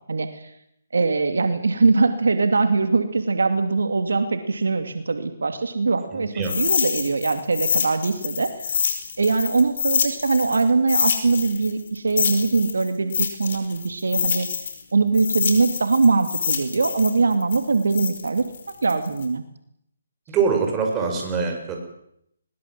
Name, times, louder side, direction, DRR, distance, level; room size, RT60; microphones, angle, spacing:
voice 1, 0.1-0.5 0.9-8.6 9.2-14.5 14.9-18.4 18.8-19.4, right 4 dB, 80° right, 8 dB, 2.7 m, -22 dB
voice 2, 6.1-6.5 20.3-21.8, right 5 dB, 15° right, 2 dB, 6.2 m, -24 dB
sound 1, 6.4-10.6 10.9-14.8 15.1-19.2, left 6 dB, 55° left, 5.0 m, -26 dB
22.0 x 21.0 x 7.8 m, 0.75 s
hypercardioid pair, 155°, 0 cm